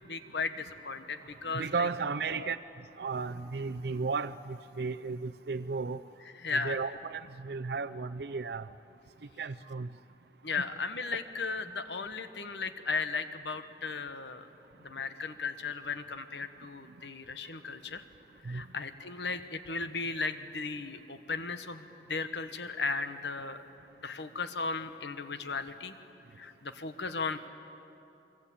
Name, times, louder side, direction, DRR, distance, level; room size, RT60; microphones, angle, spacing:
voice 1, 0.1-1.9 2.3-2.5 6.4-6.8 10.4-14.5 14.8-18.0 18.4-23.6 24.0-25.9 26.4-27.4, left 4 dB, 85° left, 9 dB, 1.3 m, -36 dB
voice 2, 1.5-2.6 3.0-6.0 6.5-8.6 9.4-9.9 18.5-18.6, right 4 dB, 70° right, 8 dB, 0.5 m, -34 dB
27.0 x 23.5 x 8.6 m, 2.9 s
head